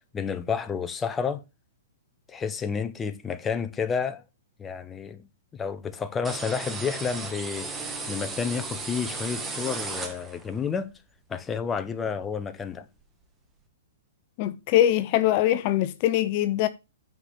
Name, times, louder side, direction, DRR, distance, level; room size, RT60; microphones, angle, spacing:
voice 1, 0.1-1.4 2.3-4.2 4.6-5.3 5.5-10.9 11.3-12.9, left 6 dB, 15° left, 1.1 m, -30 dB
sound 1, 6.2-10.6, right 3 dB, 15° right, 1.9 m, -35 dB
voice 2, 14.4-16.7, left 12 dB, 45° left, 0.7 m, -22 dB
9.5 x 5.0 x 6.9 m
hypercardioid pair, 130°, 0 cm